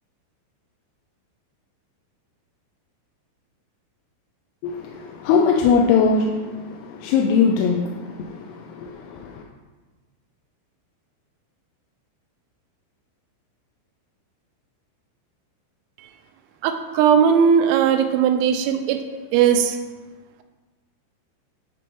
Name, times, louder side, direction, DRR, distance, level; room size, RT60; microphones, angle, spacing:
voice 1, 4.6-9.4, left 5 dB, 90° left, 0 dB, 3.4 m, -21 dB
voice 2, 16.6-19.0 19.3-19.8, right 7 dB, 85° right, 7 dB, 3.3 m, -18 dB
10.5 x 5.4 x 4.6 m, 1.3 s
omnidirectional pair, 5.9 m